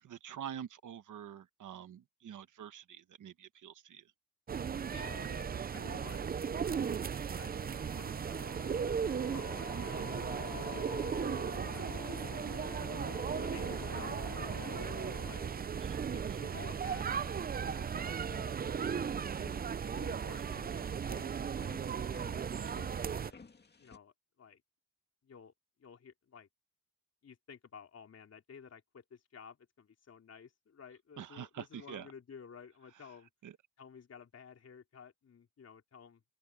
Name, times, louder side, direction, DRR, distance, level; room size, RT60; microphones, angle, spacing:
voice 1, 0.0-4.1 15.8-16.4 20.7-20.8 22.6-22.9 31.2-32.1 33.4-33.5, right 9 dB, 80° right, 1.4 m, -47 dB
sound 1, 4.5-23.3, right 7 dB, 30° right, 0.5 m, -36 dB
voice 2, 4.9-6.3 6.6-7.1 7.4-8.8 9.2-10.2 10.5-11.1 13.5-15.5 16.1-17.4 17.7-19.1 19.8-21.3 21.8-22.2 22.9-23.5 23.8-24.6 25.2-25.5 25.8-26.5 27.2-33.3 33.8-36.2, left 6 dB, 55° left, 3.9 m, -54 dB
sound 2, 7.3-15.7, left 8 dB, 75° left, 2.5 m, -47 dB
sound 3, 17.0-24.0, left 4 dB, 35° left, 2.2 m, -57 dB
open air
cardioid pair, 95°, 30 cm